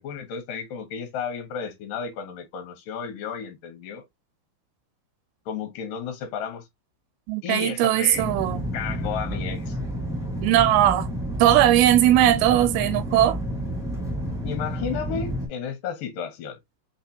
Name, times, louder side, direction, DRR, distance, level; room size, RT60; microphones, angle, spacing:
voice 1, 0.0-4.0 5.5-6.6 7.4-8.3 8.7-9.8 14.4-16.6, left 7 dB, 70° left, 2.6 m, -33 dB
voice 2, 7.3-8.7 10.4-11.1 11.4-13.4, right 13 dB, 85° right, 2.6 m, -19 dB
sound 1, 8.1-15.5, equal, ahead, 0.7 m, -30 dB
5.7 x 3.2 x 2.8 m
omnidirectional pair, 4.4 m